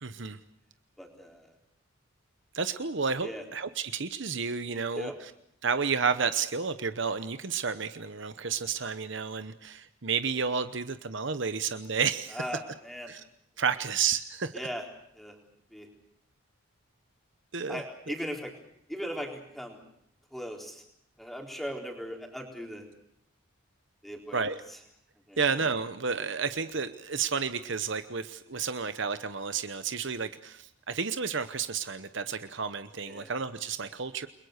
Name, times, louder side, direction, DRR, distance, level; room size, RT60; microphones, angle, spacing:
voice 1, 0.0-0.4 2.5-5.1 5.6-12.4 13.1-13.2 13.6-14.6 17.5-17.8 24.3-24.6 25.4-34.3, right 5 dB, 55° right, 11 dB, 0.9 m, -31 dB
voice 2, 1.0-1.5 3.2-3.4 4.7-5.1 12.3-13.1 13.6-13.7 14.5-14.9 15.2-15.4 15.7-15.9 17.7-18.5 18.9-19.8 20.3-20.8 21.2-22.9 24.0-24.8 25.3-25.4 33.0-33.3, equal, ahead, 1 dB, 4.0 m, -38 dB
29.5 x 22.0 x 6.6 m, 0.73 s
head